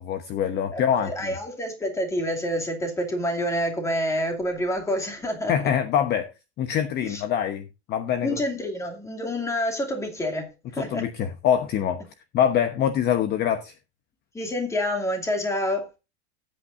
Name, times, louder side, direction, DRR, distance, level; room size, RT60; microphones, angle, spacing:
voice 1, 0.0-1.3 5.5-6.3 6.6-8.4 10.8-12.0 12.3-13.7, left 9 dB, 30° left, 1.0 m, -24 dB
voice 2, 0.7-5.5 7.0-7.2 8.2-11.0 14.3-15.9, equal, 10° left, 2.6 m, -28 dB
19.0 x 8.7 x 2.6 m
supercardioid pair, 155°, 32 cm